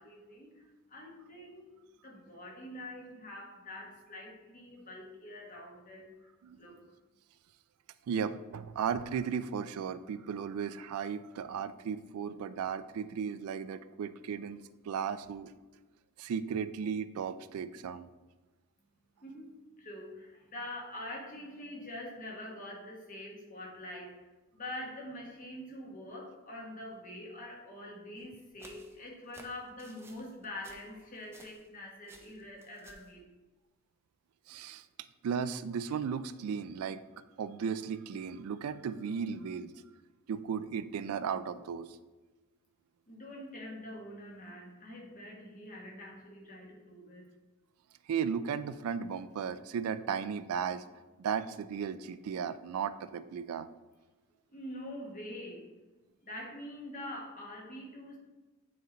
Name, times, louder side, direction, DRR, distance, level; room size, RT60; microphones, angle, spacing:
voice 1, 0.0-1.8 2.0-6.1 6.5-6.9 19.2-24.2 24.5-33.2 43.1-47.3 54.5-55.7 56.2-58.2, left 1 dB, 35° left, -1 dB, 1.3 m, -45 dB
voice 2, 8.1-14.6 14.8-15.5 16.2-18.1 34.5-34.8 35.2-37.0 37.4-39.7 40.3-42.0 48.1-50.8 51.2-53.7, right 7 dB, 80° right, 14 dB, 0.3 m, -35 dB
sound 1, 28.2-31.8 32.0-33.1, right 2 dB, 10° right, 0.5 m, -56 dB
9.1 x 3.2 x 3.9 m, 1.2 s
head